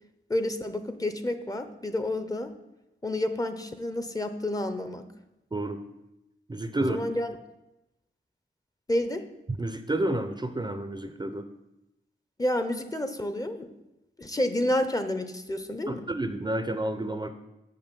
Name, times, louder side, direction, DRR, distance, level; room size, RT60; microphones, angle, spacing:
voice 1, 0.3-2.5 3.0-5.1 6.8-7.4 8.9-9.2 12.4-13.7 14.2-16.1, left 1 dB, 20° left, 9 dB, 0.6 m, -29 dB
voice 2, 6.5-7.0 9.5-11.4 15.9-17.3, right 1 dB, 20° right, 9 dB, 0.5 m, -30 dB
6.4 x 5.7 x 5.3 m, 0.94 s
cardioid pair, 60°, 20 cm